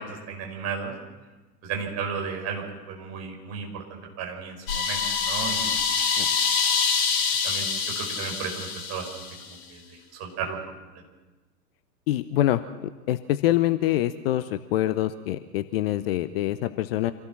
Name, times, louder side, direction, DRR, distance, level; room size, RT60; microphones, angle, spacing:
voice 1, 0.3-0.9 1.6-5.8 6.1-6.3 7.4-7.7 8.0-9.8 10.2-10.6 10.9-11.0, right 6 dB, 30° right, 2 dB, 5.3 m, -34 dB
sound 1, 4.7-9.5, left 6 dB, 55° left, 3.6 m, -26 dB
voice 2, 12.1-12.6 13.1-17.1, left 14 dB, 35° left, 13 dB, 0.8 m, -25 dB
26.0 x 16.5 x 6.1 m, 1.2 s
figure-of-eight pair, 100°, 49 cm